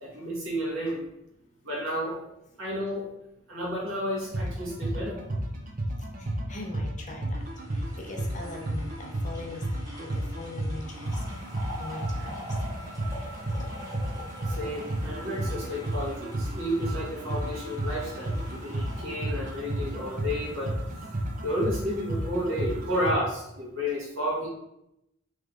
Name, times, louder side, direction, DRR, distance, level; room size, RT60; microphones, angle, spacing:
voice 1, 0.0-1.0 1.6-2.3 2.6-3.1 3.5-5.2 14.5-20.8 21.4-24.5, equal, 80° right, -4 dB, 1.4 m, -31 dB
sound 1, 4.2-23.1, right 1 dB, 40° right, 0.5 m, -33 dB
voice 2, 6.2-7.4 7.7-9.6 10.0-11.2 11.7-12.4 12.6-13.1, left 2 dB, 35° left, 0 dB, 0.6 m, -41 dB
sound 2, 7.4-20.6 21.0-21.1, equal, 20° right, 1.2 m, -45 dB
3.2 x 3.1 x 3.6 m, 0.83 s
head